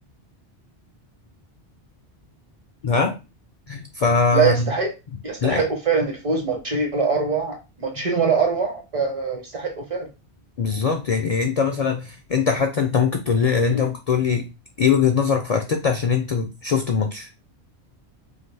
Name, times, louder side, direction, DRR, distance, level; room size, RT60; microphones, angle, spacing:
voice 1, 2.8-3.2 3.7-4.7 5.4-5.6 10.6-14.5 14.8-17.3, left 5 dB, 55° left, 5 dB, 0.4 m, -21 dB
voice 2, 4.3-4.9 5.2-10.1 13.7-13.9, right 5 dB, 40° right, 2 dB, 0.6 m, -23 dB
2.7 x 2.5 x 3.2 m, 0.28 s
omnidirectional pair, 1.1 m